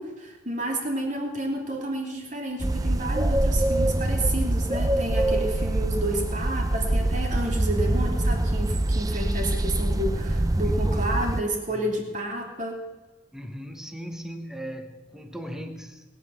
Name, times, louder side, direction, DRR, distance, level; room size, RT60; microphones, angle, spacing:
voice 1, 0.0-12.8, right 1 dB, 40° right, 2 dB, 2.8 m, -30 dB
sound 1, 2.6-11.4, right 1 dB, 20° right, 0.5 m, -24 dB
voice 2, 10.6-11.2 11.7-11.9 13.3-16.0, equal, 5° right, 6 dB, 1.2 m, -38 dB
21.0 x 8.9 x 7.1 m, 1.3 s
head